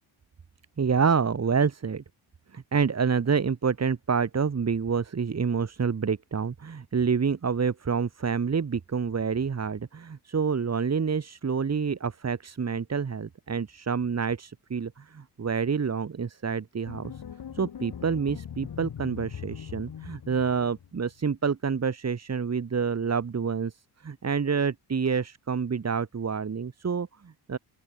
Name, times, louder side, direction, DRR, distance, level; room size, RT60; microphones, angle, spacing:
voice 1, 0.8-2.0 2.5-17.2 17.5-27.6, right 6 dB, 35° right, 3.0 m, -28 dB
sound 1, 16.9-21.1, left 8 dB, 55° left, 5.7 m, -41 dB
open air
cardioid pair, 115°, 46 cm